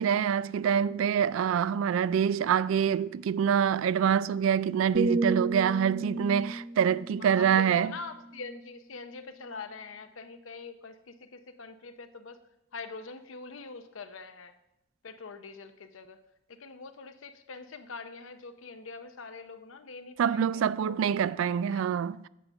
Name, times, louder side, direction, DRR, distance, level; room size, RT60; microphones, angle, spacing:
voice 1, 0.0-7.9 20.2-22.3, right 8 dB, 85° right, 0.3 m, -26 dB
sound 1, 4.9-8.9 9.3-9.6, right 2 dB, 45° right, 0.7 m, -34 dB
voice 2, 7.1-12.4 12.7-14.5 15.0-16.2 16.5-21.8, left 4 dB, 85° left, 0.7 m, -44 dB
8.5 x 6.6 x 5.4 m
head